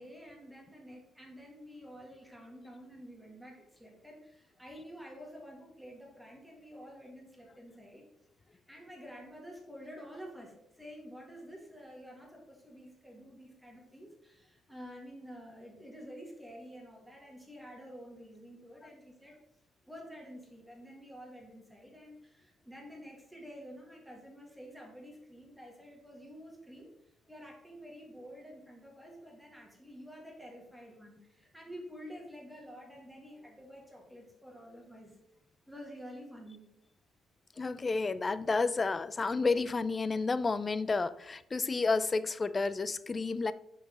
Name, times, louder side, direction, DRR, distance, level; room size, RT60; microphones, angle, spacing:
voice 1, 0.0-8.1 8.5-19.4 19.9-35.2 35.7-36.7, equal, 5° right, -1 dB, 1.9 m, -49 dB
voice 2, 37.6-43.5, left 4 dB, 30° left, 16 dB, 0.3 m, -31 dB
5.9 x 5.4 x 3.8 m, 0.83 s
cardioid pair, 90°, 0 cm